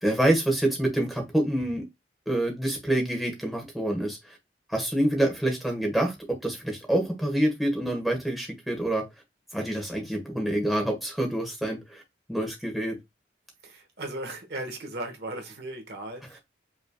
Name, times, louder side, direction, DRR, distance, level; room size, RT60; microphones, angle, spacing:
voice 1, 0.0-1.8 2.3-4.4 4.7-9.0 9.5-12.0 12.3-13.0, right 1 dB, ahead, 1.4 m, -27 dB
voice 2, 13.6-16.4, right 1 dB, 70° right, 1.1 m, -37 dB
5.4 x 3.3 x 2.2 m
head